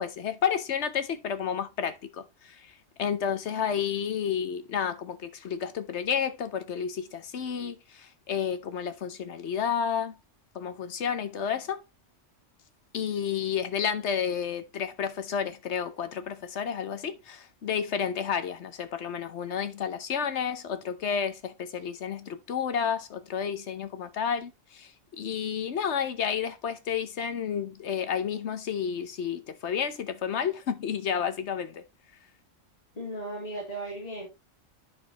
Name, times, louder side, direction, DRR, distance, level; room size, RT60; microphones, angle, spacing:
voice 1, 0.0-2.7 3.0-10.2 10.5-11.8 12.9-24.9 25.2-31.8, left 7 dB, 70° left, 1.2 m, -31 dB
voice 2, 32.9-34.3, right 1 dB, 30° left, 2.4 m, -36 dB
9.2 x 6.3 x 3.0 m
omnidirectional pair, 1.2 m